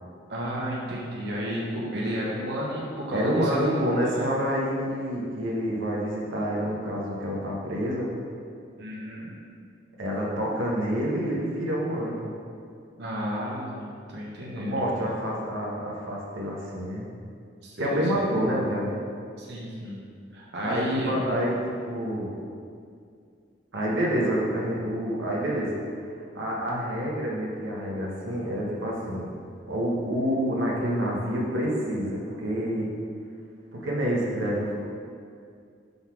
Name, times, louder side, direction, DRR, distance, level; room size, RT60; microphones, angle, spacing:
voice 1, 0.3-3.9 8.8-9.3 13.0-14.8 17.6-18.3 19.4-20.0 20.3-21.2 23.8-24.0, equal, 60° right, -5 dB, 1.0 m, -32 dB
voice 2, 3.1-8.1 10.0-12.3 14.6-17.0 17.8-19.0 20.6-22.4 23.7-25.8 26.3-29.3 29.7-32.9 33.7-34.8, equal, 85° right, -4 dB, 1.1 m, -28 dB
5.3 x 4.0 x 5.8 m, 2.3 s
head